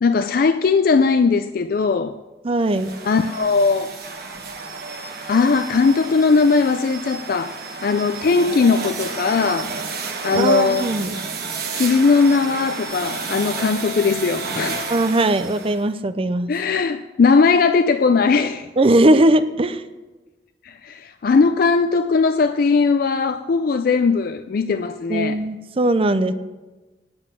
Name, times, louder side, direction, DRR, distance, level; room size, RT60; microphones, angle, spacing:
voice 1, 0.0-2.2 3.0-4.0 5.3-7.5 7.8-9.7 10.2-10.9 11.7-14.9 16.5-18.7 20.6-25.4, left 4 dB, 55° left, 10 dB, 0.4 m, -19 dB
voice 2, 2.4-3.0 10.3-11.1 14.9-16.5 18.8-19.8 25.1-26.3, right 1 dB, 30° right, 11 dB, 0.6 m, -19 dB
sound 1, 2.6-15.8, right 4 dB, 60° right, 1.4 m, -31 dB
9.6 x 7.3 x 7.4 m, 1.2 s
head